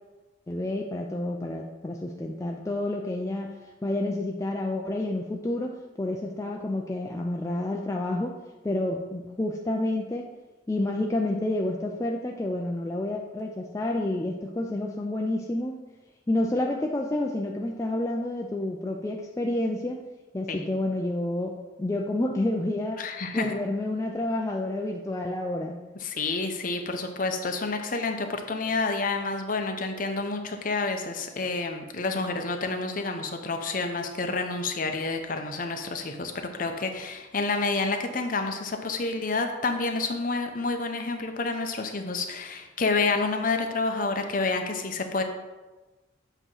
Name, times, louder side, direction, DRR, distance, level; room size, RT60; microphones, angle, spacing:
voice 1, 0.5-3.6 3.8-8.4 8.6-10.3 10.7-15.8 16.3-20.0 20.3-25.8, left 1 dB, 15° left, 0 dB, 0.3 m, -29 dB
voice 2, 23.0-23.6 26.0-45.2, left 3 dB, 45° left, 4 dB, 0.7 m, -29 dB
7.8 x 3.0 x 6.2 m, 1.2 s
head